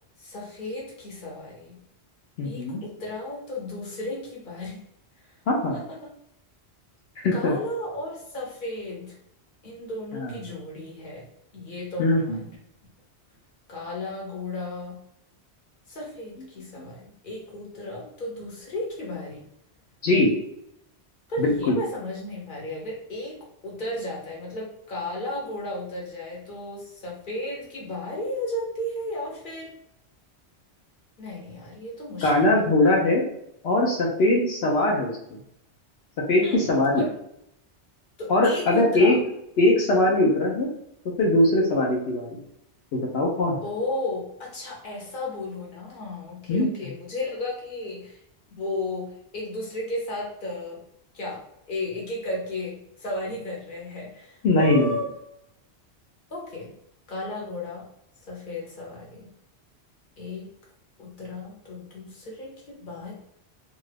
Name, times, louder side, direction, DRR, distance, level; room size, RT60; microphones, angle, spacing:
voice 1, 0.2-1.8 2.4-4.8 5.7-5.8 7.3-9.2 9.6-11.3 11.5-12.5 13.7-15.0 15.9-19.5 21.3-29.7 31.2-32.7 36.4-36.7 36.9-37.1 38.2-39.2 43.6-48.2 48.6-50.8 51.1-51.4 51.7-55.1 56.3-56.7 57.1-57.8 58.3-59.3 60.2-60.5 61.0-63.1, left 1 dB, 50° left, -3 dB, 1.1 m, -34 dB
voice 2, 2.4-2.8 5.5-5.8 7.2-7.5 10.1-10.3 12.0-12.4 20.0-20.3 21.4-21.8 32.2-33.2 33.6-35.1 36.3-37.0 38.3-39.1 39.6-40.7 41.2-42.4 42.9-43.6 46.5-46.7 54.4-55.0, left 2 dB, 70° left, -1 dB, 0.9 m, -21 dB
2.6 x 2.4 x 3.3 m, 0.77 s
omnidirectional pair, 1.1 m